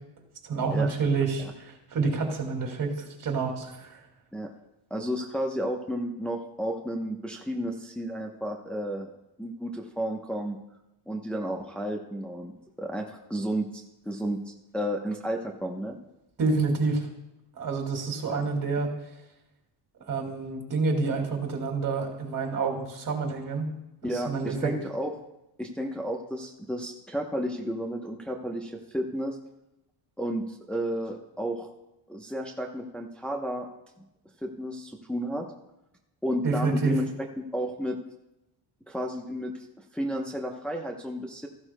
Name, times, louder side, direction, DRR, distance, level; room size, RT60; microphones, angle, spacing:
voice 1, 0.4-2.9 3.2-4.0 16.4-17.1 17.6-18.9 20.1-23.7 24.3-24.7 36.4-36.9, right 4 dB, 45° right, 2 dB, 2.2 m, -28 dB
voice 2, 4.9-9.1 9.4-10.6 11.1-12.5 12.8-16.0 18.3-18.4 24.0-25.1 25.6-29.4 30.2-31.7 32.1-33.7 34.4-35.5 36.2-37.1 37.4-38.0 38.9-41.5, equal, ahead, 0 dB, 0.8 m, -32 dB
15.0 x 11.0 x 2.2 m, 0.91 s
cardioid pair, 115°, 43 cm